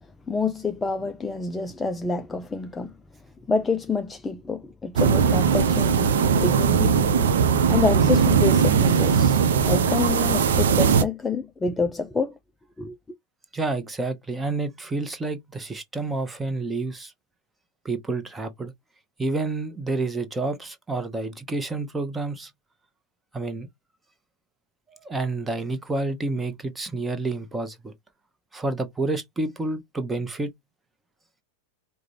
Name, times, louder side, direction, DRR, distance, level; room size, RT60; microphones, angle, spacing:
voice 1, 0.3-2.9 3.5-7.3 7.7-12.3 12.8-12.9, left 4 dB, 10° left, 0.4 m, -27 dB
sound 1, 5.0-11.0, right 6 dB, 60° right, 0.6 m, -19 dB
voice 2, 13.5-17.1 17.8-18.7 19.2-22.5 23.3-23.7 25.0-27.9 28.5-30.5, right 3 dB, 10° right, 0.8 m, -29 dB
4.9 x 2.2 x 3.1 m
figure-of-eight pair, 90°, 0 cm